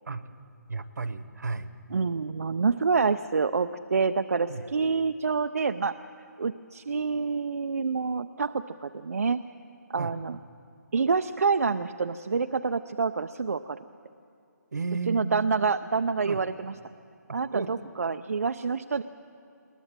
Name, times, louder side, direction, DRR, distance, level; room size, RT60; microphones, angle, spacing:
voice 1, 0.7-1.7 4.5-4.7 10.0-10.1 14.7-15.7 16.3-16.4 17.3-17.9, right 4 dB, 75° right, 13 dB, 1.2 m, -34 dB
voice 2, 1.9-6.0 6.4-9.4 9.9-10.4 10.9-13.8 15.1-16.7 17.3-19.0, right 5 dB, 55° right, 9 dB, 0.5 m, -27 dB
20.5 x 19.5 x 7.4 m, 2.7 s
hypercardioid pair, 175°, 10 cm